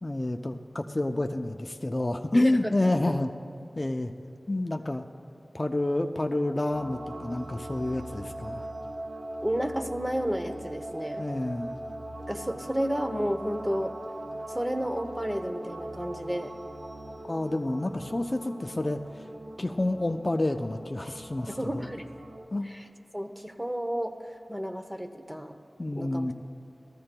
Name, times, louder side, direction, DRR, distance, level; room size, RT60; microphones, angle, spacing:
voice 1, 0.0-3.3 3.8-4.1 4.5-5.0 5.5-8.7 11.1-11.8 17.3-19.2 19.6-21.9 22.5-22.7 25.8-26.3, left 1 dB, 35° left, 5 dB, 0.4 m, -29 dB
voice 2, 2.3-2.7 3.1-3.2 9.4-11.3 12.3-13.9 14.5-16.5 21.5-22.1 22.6-22.9 23.1-25.6 25.9-26.3, equal, 10° right, 5 dB, 0.7 m, -32 dB
sound 1, 6.7-22.5, right 1 dB, 70° right, 0.9 m, -41 dB
18.5 x 14.0 x 2.2 m, 2.5 s
wide cardioid pair, 70°, 0 cm